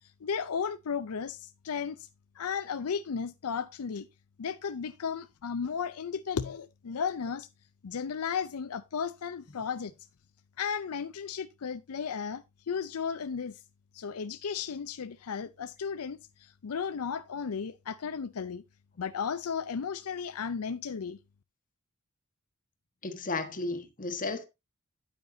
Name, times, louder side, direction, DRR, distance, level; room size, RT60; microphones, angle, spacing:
voice 1, 0.2-2.1 2.4-4.1 4.4-7.5 7.8-9.9 10.6-13.6 13.9-18.6 19.0-21.2, left 6 dB, 80° left, 0.5 m, -34 dB
voice 2, 23.0-24.4, left 3 dB, 40° left, 1.4 m, -34 dB
9.4 x 9.0 x 2.7 m
head